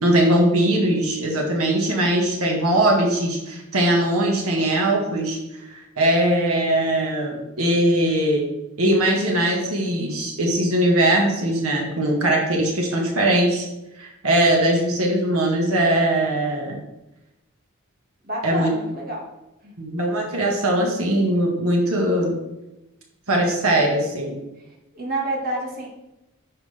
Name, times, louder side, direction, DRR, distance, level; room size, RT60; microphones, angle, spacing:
voice 1, 0.0-5.4 5.7-8.5 8.8-13.7 14.0-16.8 18.4-18.7 19.8-22.4 23.3-24.4, right 1 dB, 90° right, 0 dB, 1.9 m, -20 dB
voice 2, 18.2-19.2 19.6-19.7 24.9-25.9, right 1 dB, 40° right, -3 dB, 2.1 m, -28 dB
9.6 x 7.4 x 3.6 m, 0.95 s
head